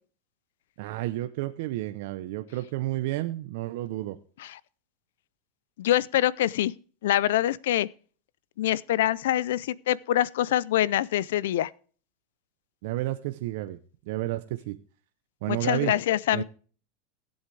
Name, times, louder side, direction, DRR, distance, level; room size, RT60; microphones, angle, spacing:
voice 1, 0.8-4.2 12.8-13.8 14.1-14.8 15.4-15.9 16.3-16.4, right 16 dB, 65° right, 0.7 m, -31 dB
voice 2, 5.8-6.7 7.0-7.9 8.6-11.7 15.5-16.4, left 13 dB, 80° left, 0.5 m, -25 dB
17.5 x 8.0 x 3.3 m
supercardioid pair, 135°, 0 cm